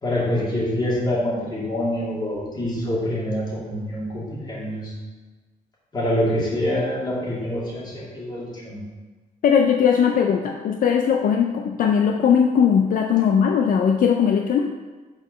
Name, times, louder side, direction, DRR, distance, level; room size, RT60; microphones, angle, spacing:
voice 1, 0.0-4.9 5.9-8.8, left 1 dB, 30° left, -6 dB, 2.6 m, -25 dB
voice 2, 9.4-14.7, left 7 dB, 65° left, 3 dB, 0.5 m, -19 dB
6.4 x 5.0 x 5.5 m, 1.3 s
wide cardioid pair, 140°, 15 cm